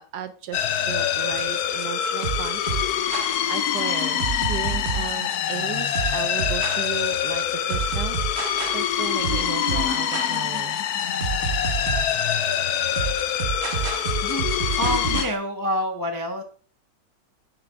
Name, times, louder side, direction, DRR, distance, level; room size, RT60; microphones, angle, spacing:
voice 1, 0.0-2.7 3.5-8.5 8.7-10.8, right 10 dB, 70° right, 11 dB, 1.0 m, -35 dB
sound 1, 0.5-15.3, left 9 dB, 65° left, 1.0 m, -25 dB
sound 2, 1.4-15.4, right 5 dB, 45° right, 1.0 m, -29 dB
voice 2, 14.2-16.4, equal, 25° left, 4 dB, 0.4 m, -27 dB
6.9 x 6.6 x 3.4 m, 0.43 s
omnidirectional pair, 2.2 m